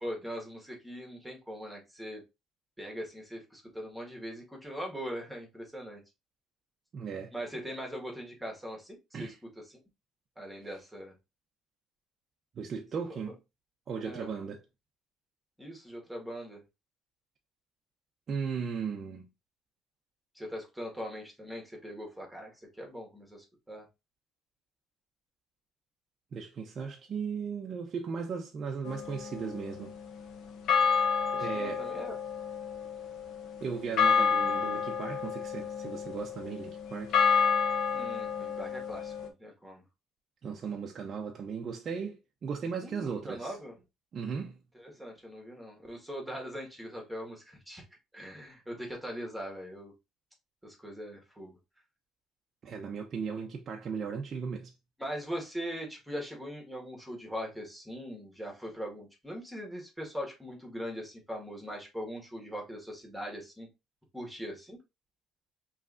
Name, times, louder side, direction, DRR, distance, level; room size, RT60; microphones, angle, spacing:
voice 1, 0.0-2.2 2.8-6.0 7.3-9.3 9.7-9.8 10.4-11.1 14.0-14.3 15.6-16.6 20.4-23.9 31.3-32.2 37.9-39.8 42.8-43.8 44.9-47.8 48.1-49.9 50.6-51.6 55.0-63.7 64.1-64.8, equal, 5° right, 1.7 m, -41 dB
voice 2, 6.9-7.3 9.1-9.4 12.6-13.4 13.9-14.6 18.3-19.3 26.3-29.9 31.4-31.9 33.6-37.2 40.4-43.6 44.1-44.6 52.6-54.7, right 6 dB, 45° right, 0.6 m, -36 dB
sound 1, 28.9-30.2 30.7-39.3, left 6 dB, 70° left, 0.8 m, -30 dB
5.4 x 3.2 x 2.5 m
cardioid pair, 100°, 0 cm